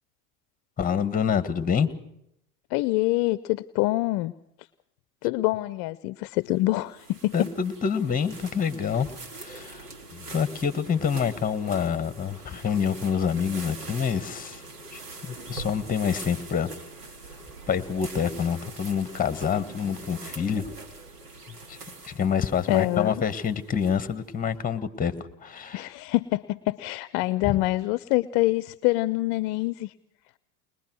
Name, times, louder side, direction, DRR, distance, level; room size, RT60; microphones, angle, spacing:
voice 1, 0.8-1.9 7.3-9.1 9.3-9.8 10.1-14.6 14.9-16.7 17.3-17.4 17.7-20.7 21.5-21.8 22.0-25.9 27.4-27.6, left 7 dB, 20° left, 13 dB, 1.6 m, -27 dB
voice 2, 2.7-4.3 5.2-7.5 22.7-23.2 25.7-29.9, left 19 dB, 50° left, 16 dB, 0.7 m, -25 dB
sound 1, 6.5-24.3, right 3 dB, 90° right, 3.4 m, -43 dB
21.5 x 21.0 x 6.2 m, 0.77 s
hypercardioid pair, 95°, 45 cm